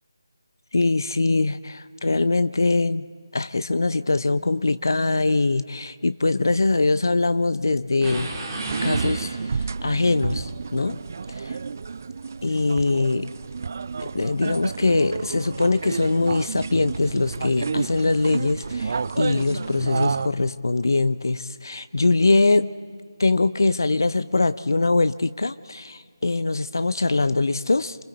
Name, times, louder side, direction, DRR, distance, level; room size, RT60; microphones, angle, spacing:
voice 1, 0.7-3.1 3.3-8.3 8.8-9.3 9.8-11.0 11.4-11.5 12.4-13.3 14.0-22.7 23.2-28.0, left 3 dB, 55° left, 14 dB, 0.7 m, -22 dB
sound 1, 8.0-9.8, right 2 dB, 10° right, 2.0 m, -33 dB
sound 2, 8.6-20.3, right 5 dB, 35° right, 0.4 m, -30 dB
27.5 x 25.5 x 4.3 m, 2.1 s
figure-of-eight pair, 155°, 2 cm